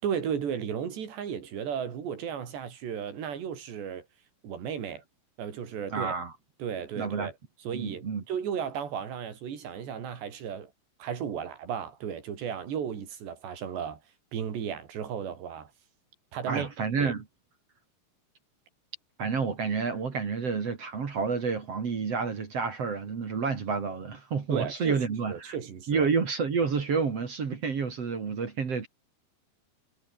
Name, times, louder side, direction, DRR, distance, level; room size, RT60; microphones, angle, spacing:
voice 1, 0.0-4.1 4.4-5.0 5.4-6.2 6.6-7.3 7.6-10.7 11.0-14.0 14.3-15.7 16.3-16.7 17.0-17.1 24.5-25.0 25.3-26.1, right 8 dB, 85° right, 5.8 m, -34 dB
voice 2, 5.9-6.3 6.9-7.3 7.7-8.2 16.5-17.2 19.2-25.6 25.9-28.9, right 5 dB, 40° right, 3.2 m, -29 dB
omnidirectional pair, 4.8 m